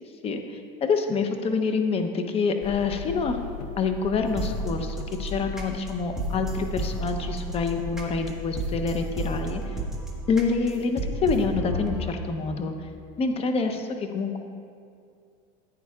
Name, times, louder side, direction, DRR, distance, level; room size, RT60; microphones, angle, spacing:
voice 1, 0.8-3.4 3.8-9.7 10.3-12.7 13.2-14.4, left 4 dB, 30° left, 6 dB, 0.8 m, -27 dB
sound 1, 2.6-8.7, left 9 dB, 55° left, 0.4 m, -38 dB
sound 2, 4.2-12.1, right 2 dB, ahead, 1.4 m, -33 dB
15.0 x 9.1 x 2.4 m, 2.3 s
supercardioid pair, 125°, 21 cm